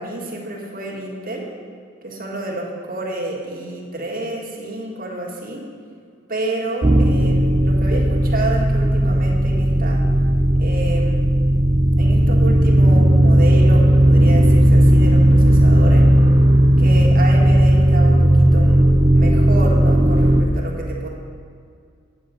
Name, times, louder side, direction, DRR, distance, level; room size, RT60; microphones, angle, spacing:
voice 1, 0.0-1.5 2.0-5.6 6.3-10.0 10.6-11.3 12.0-16.1 16.8-18.9 19.1-21.1, right 2 dB, 45° right, -2 dB, 1.7 m, -29 dB
sound 1, 6.8-20.4, right 1 dB, 20° right, 0.5 m, -14 dB
9.2 x 7.5 x 5.0 m, 2.3 s
head